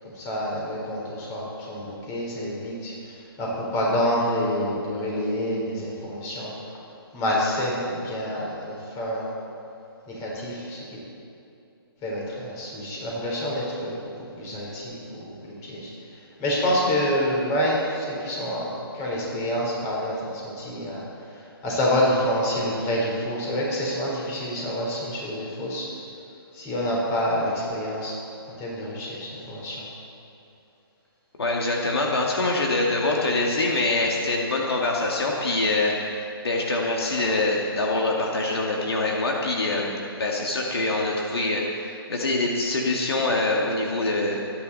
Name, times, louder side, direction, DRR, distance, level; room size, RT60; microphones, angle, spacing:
voice 1, 0.2-2.9 3.4-6.5 7.1-9.3 10.1-10.8 12.0-13.9 14.3-15.9 16.4-21.0 21.6-25.9 26.5-28.2 28.6-29.9, equal, 25° left, -3 dB, 4.0 m, -27 dB
voice 2, 31.4-35.9 36.4-44.4, left 2 dB, 75° left, -1 dB, 2.3 m, -24 dB
24.5 x 10.0 x 4.2 m, 2.8 s
hypercardioid pair, 145°, 13 cm